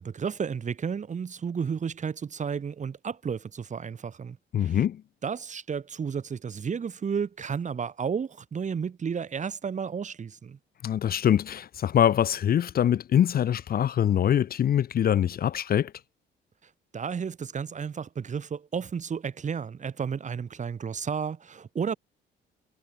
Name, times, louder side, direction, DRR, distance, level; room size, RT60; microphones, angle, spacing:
voice 1, 0.0-4.8 5.2-10.6 16.9-22.0, right 6 dB, 35° right, 1.1 m, -32 dB
voice 2, 4.5-5.0 10.8-15.9, left 10 dB, 50° left, 0.6 m, -24 dB
cardioid pair, 90°, 20 cm